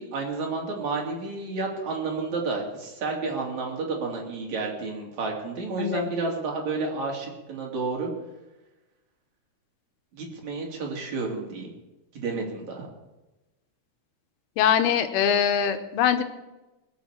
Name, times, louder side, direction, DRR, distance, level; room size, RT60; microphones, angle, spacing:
voice 1, 0.0-8.1 10.1-11.7 12.1-12.9, right 3 dB, 50° right, -1 dB, 3.6 m, -31 dB
voice 2, 5.8-6.1 14.6-16.2, left 8 dB, 80° left, 9 dB, 2.7 m, -22 dB
20.5 x 7.2 x 7.1 m, 1.1 s
omnidirectional pair, 4.6 m